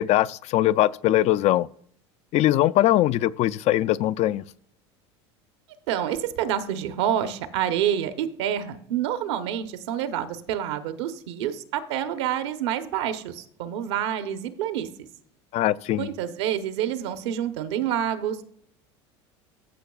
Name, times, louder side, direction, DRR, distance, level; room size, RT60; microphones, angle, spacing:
voice 1, 0.0-1.7 2.3-4.4 15.5-16.1, left 14 dB, 50° left, 0.4 m, -21 dB
voice 2, 5.9-14.9 16.0-18.4, right 10 dB, 75° right, 0.9 m, -28 dB
14.5 x 5.9 x 2.4 m
hypercardioid pair, 85°, 14 cm